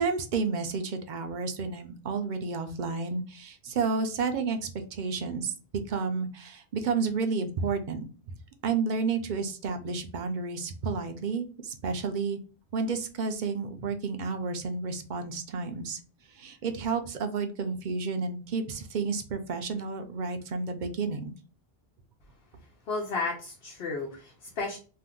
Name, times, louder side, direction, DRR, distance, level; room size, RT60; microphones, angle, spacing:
voice 1, 0.0-5.5 5.9-8.3 8.6-12.4 12.7-16.0 16.3-21.3, right 4 dB, 55° right, 7 dB, 0.6 m, -31 dB
voice 2, 22.9-24.8, left 3 dB, 80° left, -1 dB, 0.9 m, -33 dB
2.7 x 2.2 x 3.5 m, 0.37 s
omnidirectional pair, 1.0 m